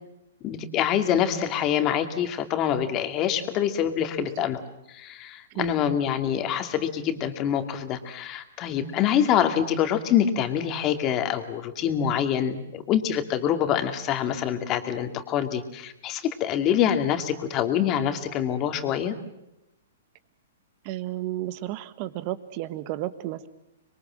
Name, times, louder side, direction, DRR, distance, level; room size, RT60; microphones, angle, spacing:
voice 1, 0.4-4.6 4.9-19.1, left 9 dB, 35° left, 7 dB, 2.5 m, -25 dB
voice 2, 5.5-5.8 20.8-23.5, right 15 dB, 45° right, 14 dB, 1.5 m, -33 dB
26.0 x 22.5 x 7.6 m, 0.90 s
hypercardioid pair, 125°, 0 cm